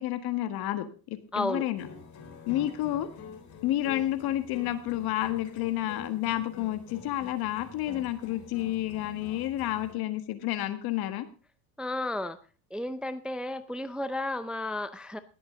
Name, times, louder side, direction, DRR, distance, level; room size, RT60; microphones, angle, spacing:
voice 1, 0.0-1.8 2.5-3.1 3.6-11.3, left 14 dB, 60° left, 10 dB, 1.6 m, -30 dB
voice 2, 1.3-1.7 11.8-12.4 12.7-15.2, left 1 dB, ahead, 12 dB, 0.5 m, -32 dB
sound 1, 1.7-9.9, left 5 dB, 45° left, 3.6 m, -46 dB
19.5 x 7.9 x 3.8 m, 0.35 s
cardioid pair, 120°, 41 cm